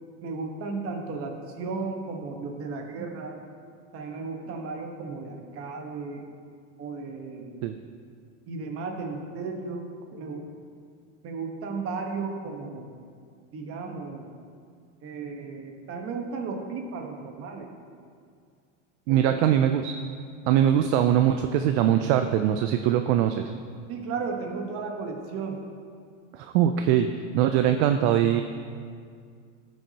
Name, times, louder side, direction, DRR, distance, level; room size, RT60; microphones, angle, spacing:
voice 1, 0.2-3.4 3.9-6.3 6.8-7.6 8.5-9.8 10.1-10.5 11.2-12.9 13.5-14.3 15.0-17.7 19.1-19.3 23.9-25.6, right 4 dB, 35° right, 2 dB, 1.2 m, -34 dB
voice 2, 19.1-19.9 20.5-23.5 26.3-28.4, right 10 dB, 60° right, 7 dB, 0.5 m, -22 dB
13.5 x 6.3 x 2.8 m, 2.2 s
supercardioid pair, 140°, 37 cm